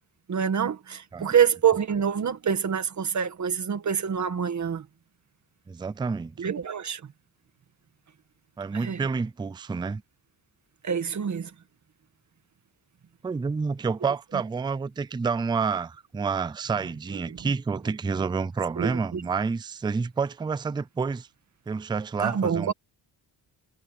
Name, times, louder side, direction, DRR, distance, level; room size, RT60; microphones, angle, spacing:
voice 1, 0.3-4.8 6.4-7.0 8.8-9.0 10.8-11.5 17.3-17.4 18.8-19.2 22.2-22.7, right 7 dB, 40° right, 1.7 m, -26 dB
voice 2, 5.7-6.4 8.6-10.0 13.2-21.3 21.7-22.7, right 5 dB, 10° right, 0.3 m, -29 dB
wide cardioid pair, 160°, 41 cm